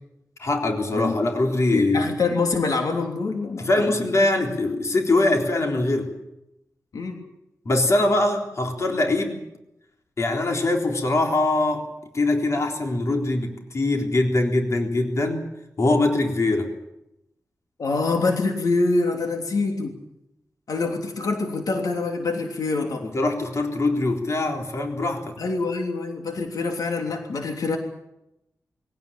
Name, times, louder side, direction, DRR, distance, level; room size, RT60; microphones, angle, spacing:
voice 1, 0.4-2.1 3.6-6.1 7.7-9.4 10.2-11.8 12.1-15.5 15.8-16.7 23.0-25.4, left 2 dB, 55° left, 2 dB, 3.8 m, -22 dB
voice 2, 0.9-1.3 1.7-4.0 6.9-7.2 17.8-20.0 20.7-23.1 25.4-27.8, left 3 dB, 85° left, 3 dB, 3.2 m, -25 dB
23.0 x 17.0 x 8.9 m, 0.88 s
wide cardioid pair, 115°, 6 cm